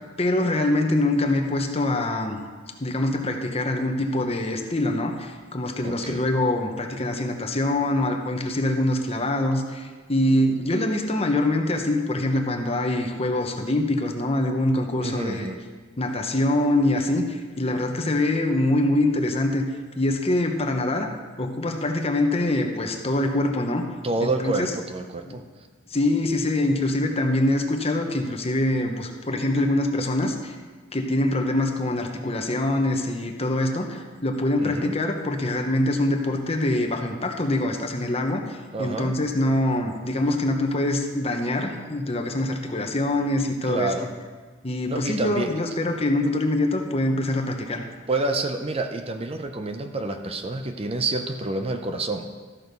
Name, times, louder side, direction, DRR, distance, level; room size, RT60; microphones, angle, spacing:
voice 1, 0.2-2.4 2.8-15.5 16.0-19.6 20.0-21.1 21.4-23.9 24.2-24.7 25.3-25.4 25.9-30.5 30.9-43.9 44.6-47.8, left 1 dB, 30° left, 4 dB, 1.0 m, -24 dB
voice 2, 5.8-6.2 15.0-15.6 24.0-25.4 34.6-34.9 38.7-39.1 43.6-44.1 44.9-45.6 48.1-52.3, right 2 dB, 30° right, 6 dB, 0.6 m, -28 dB
13.5 x 6.4 x 5.3 m, 1.4 s
head